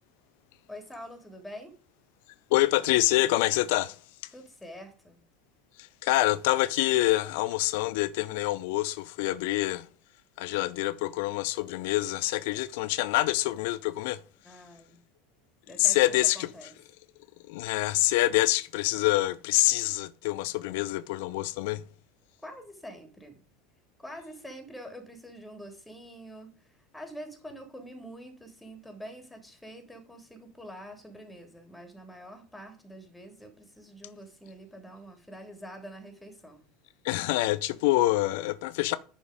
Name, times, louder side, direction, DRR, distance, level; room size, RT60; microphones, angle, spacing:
voice 1, 0.7-1.7 4.3-5.2 14.4-15.0 15.7-16.8 22.4-23.4 24.0-36.6, equal, 5° left, 3.1 m, -46 dB
voice 2, 2.5-4.0 5.8-9.9 10.4-14.2 15.8-16.5 17.5-21.8 37.0-39.0, left 17 dB, 60° left, 0.6 m, -26 dB
10.0 x 5.2 x 5.1 m
figure-of-eight pair, 75°, 0 cm